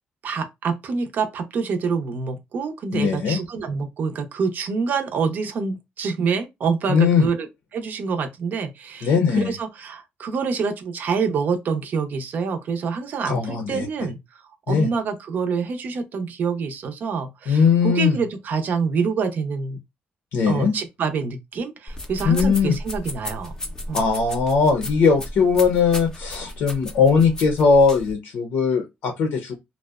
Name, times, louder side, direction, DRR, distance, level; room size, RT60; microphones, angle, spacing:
voice 1, 0.2-7.5 7.7-14.2 14.7-19.8 20.5-23.5 23.9-24.0, right 5 dB, 55° right, 0.5 m, -26 dB
voice 2, 2.9-3.4 6.9-7.2 9.0-9.5 13.3-13.9 14.7-14.9 17.5-18.2 20.3-20.7 22.2-22.8 23.9-29.5, left 5 dB, 85° left, 0.6 m, -19 dB
sound 1, 21.9-28.1, left 1 dB, 20° left, 0.5 m, -34 dB
2.6 x 2.1 x 2.3 m
cardioid pair, 130°, 4 cm